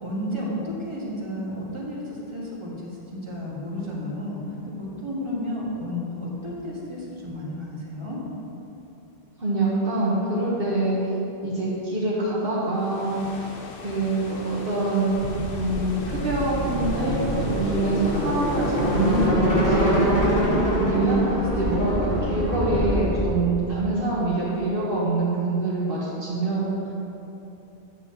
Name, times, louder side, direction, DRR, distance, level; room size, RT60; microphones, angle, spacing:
voice 1, 0.0-4.4 4.8-8.2 20.1-20.8 21.3-21.7 22.1-22.8, left 1 dB, 25° right, -6 dB, 1.5 m, -33 dB
voice 2, 9.4-11.0 11.4-13.2 13.8-15.1 15.5-20.0 20.7-26.7, right 2 dB, 60° right, -8 dB, 1.3 m, -25 dB
sound 1, 12.7-19.3, left 3 dB, 65° left, 0.9 m, -39 dB
sound 2, 15.1-23.3, equal, 80° left, 2.2 m, -25 dB
9.2 x 7.5 x 2.8 m, 2.9 s
omnidirectional pair, 1.1 m